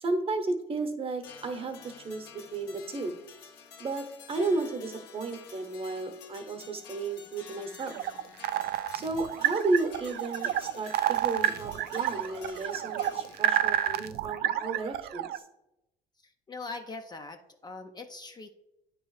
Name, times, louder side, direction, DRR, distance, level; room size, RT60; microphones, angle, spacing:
voice 1, 0.0-3.1 3.8-7.9 8.9-15.4, right 3 dB, 35° right, 7 dB, 0.9 m, -33 dB
sound 1, 1.2-13.7, left 6 dB, 90° left, 0.9 m, -50 dB
sound 2, 7.8-15.4, right 11 dB, 70° right, 0.4 m, -29 dB
voice 2, 16.2-18.6, left 3 dB, 25° left, 6 dB, 0.5 m, -42 dB
9.2 x 3.1 x 4.8 m, 0.89 s
cardioid pair, 110°, 17 cm